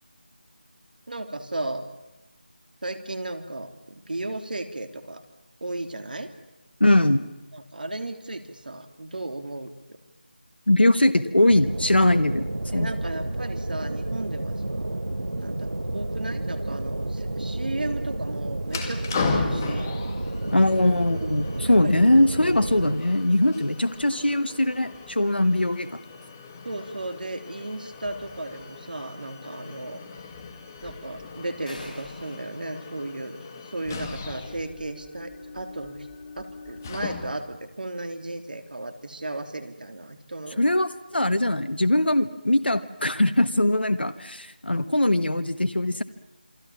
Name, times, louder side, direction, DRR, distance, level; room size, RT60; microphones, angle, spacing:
voice 1, 1.1-1.9 2.8-5.2 5.6-6.3 7.5-10.0 12.7-15.0 15.4-19.9 21.8-22.0 26.6-30.0 30.8-36.1 36.4-40.6, right 2 dB, 60° right, 8 dB, 3.1 m, -35 dB
voice 2, 6.8-7.3 10.7-12.5 12.7-12.9 20.5-25.9 40.6-46.0, left 1 dB, 85° left, 11 dB, 1.3 m, -21 dB
sound 1, 11.5-23.0, right 1 dB, 80° right, 1.2 m, -31 dB
sound 2, 18.7-37.6, left 4 dB, 20° left, 2.0 m, -37 dB
sound 3, 31.7-33.8, left 1 dB, 50° left, 7.1 m, -46 dB
28.0 x 23.0 x 7.3 m, 1.0 s
figure-of-eight pair, 165°, 5 cm